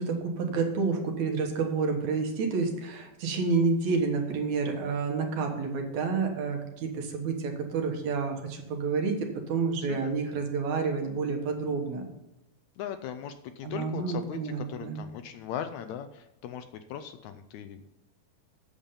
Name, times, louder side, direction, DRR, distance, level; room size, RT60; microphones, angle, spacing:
voice 1, 0.0-12.1 13.6-15.1, right 4 dB, 70° right, 3 dB, 2.5 m, -29 dB
voice 2, 9.8-10.1 12.8-17.9, left 9 dB, 80° left, 9 dB, 1.7 m, -39 dB
8.8 x 7.2 x 5.5 m, 0.95 s
omnidirectional pair, 3.6 m